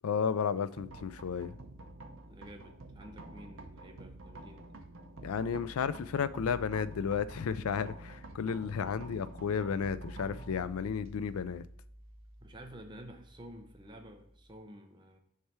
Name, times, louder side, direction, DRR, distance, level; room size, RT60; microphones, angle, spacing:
voice 1, 0.0-1.6 5.2-11.7, left 6 dB, 75° left, 0.4 m, -33 dB
sound 1, 0.7-14.6, right 1 dB, 60° right, 0.7 m, -48 dB
voice 2, 2.3-4.6 9.6-9.7 12.4-15.2, equal, 20° right, 0.7 m, -51 dB
6.6 x 3.3 x 4.3 m
head